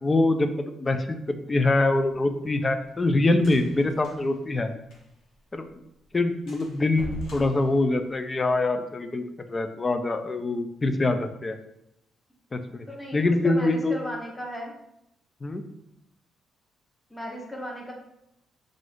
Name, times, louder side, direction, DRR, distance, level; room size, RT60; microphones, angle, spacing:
voice 1, 0.0-4.7 5.5-5.7 6.1-11.6 12.5-12.9 13.1-13.9 15.4-15.6, left 2 dB, 25° left, 7 dB, 0.3 m, -24 dB
sound 1, 2.0-5.4 5.7-5.8 6.0-6.2 6.5-8.5, left 2 dB, 75° left, 0.9 m, -42 dB
voice 2, 12.9-14.7 17.1-17.9, equal, 10° left, -1 dB, 0.7 m, -36 dB
2.5 x 2.4 x 3.5 m, 0.82 s
cardioid pair, 90°, 0 cm